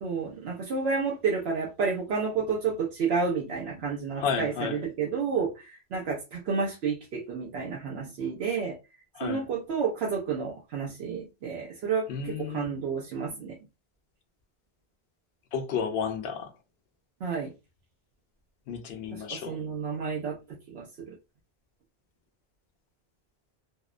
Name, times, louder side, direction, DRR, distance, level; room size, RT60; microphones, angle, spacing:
voice 1, 0.0-8.8 9.2-13.6 17.2-17.5 19.1-21.1, right 5 dB, 80° right, 0.9 m, -30 dB
voice 2, 4.2-4.8 9.1-9.4 12.1-12.7 15.5-16.5 18.7-19.6, left 6 dB, 75° left, 0.8 m, -32 dB
2.8 x 2.0 x 2.3 m
omnidirectional pair, 1.1 m